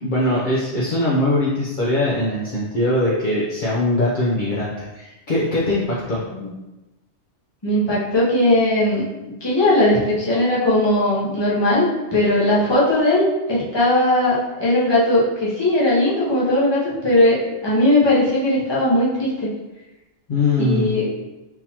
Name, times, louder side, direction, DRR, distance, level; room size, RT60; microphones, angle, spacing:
voice 1, 0.0-6.2 20.3-20.9, left 1 dB, 50° left, -6 dB, 0.7 m, -21 dB
voice 2, 7.6-9.0 9.4-19.5 20.6-21.1, left 1 dB, 25° left, -7 dB, 0.9 m, -18 dB
3.8 x 2.8 x 2.8 m, 1.0 s
omnidirectional pair, 1.2 m